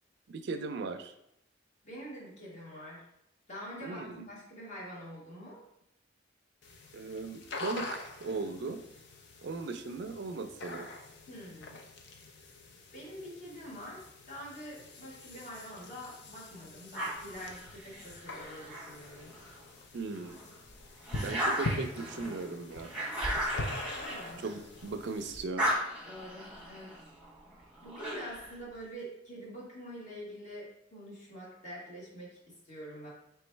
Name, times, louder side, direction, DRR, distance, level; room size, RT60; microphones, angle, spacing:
voice 1, 0.3-1.1 3.8-4.2 6.9-8.8 9.4-10.9 19.9-20.4 21.1-22.9 24.4-25.7, right 3 dB, 65° right, 8 dB, 0.4 m, -38 dB
voice 2, 1.8-3.0 3.5-5.6 11.3-11.8 12.9-19.3 23.9-24.4 26.0-27.0 27.8-33.1, equal, 40° left, -5 dB, 1.6 m, -45 dB
sound 1, 6.6-25.4, left 2 dB, 60° left, 0.6 m, -44 dB
sound 2, 16.9-19.6 20.1-25.0 25.3-28.6, equal, 5° right, 1.1 m, -37 dB
3.4 x 3.1 x 4.4 m, 0.80 s
head